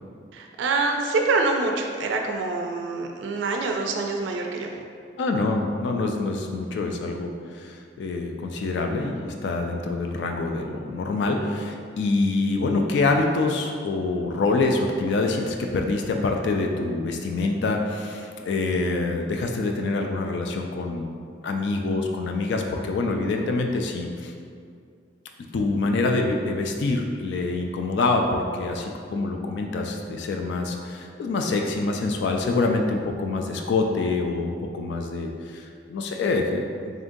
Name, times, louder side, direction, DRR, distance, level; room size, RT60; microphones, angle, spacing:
voice 1, 0.3-4.7, right 3 dB, 90° right, 3 dB, 0.3 m, -25 dB
voice 2, 5.2-21.1 21.4-24.3 25.5-36.6, left 3 dB, 75° left, 3 dB, 0.3 m, -26 dB
3.6 x 3.6 x 2.6 m, 2.2 s
head